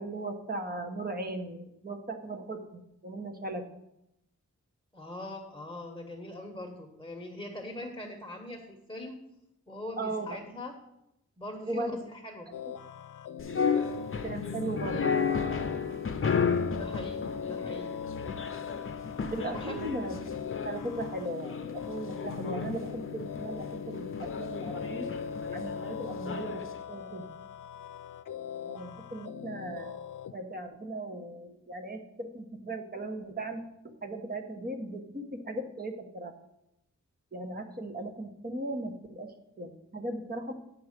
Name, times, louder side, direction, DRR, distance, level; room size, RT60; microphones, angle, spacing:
voice 1, 0.0-3.6 10.0-10.4 11.7-12.0 14.2-15.0 19.3-20.2 20.6-25.1 25.5-27.2 28.6-30.0 30.3-36.3 37.3-40.5, right 2 dB, 30° right, 4 dB, 1.1 m, -37 dB
voice 2, 4.9-9.2 9.7-10.7 11.4-12.5 16.7-18.0 19.5-19.8, left 1 dB, 10° left, 1 dB, 1.2 m, -42 dB
sound 1, 12.5-30.3, left 7 dB, 85° left, 0.5 m, -41 dB
sound 2, 13.4-26.7, left 5 dB, 45° left, 0.7 m, -33 dB
9.4 x 4.8 x 6.6 m, 0.82 s
wide cardioid pair, 145°, 30 cm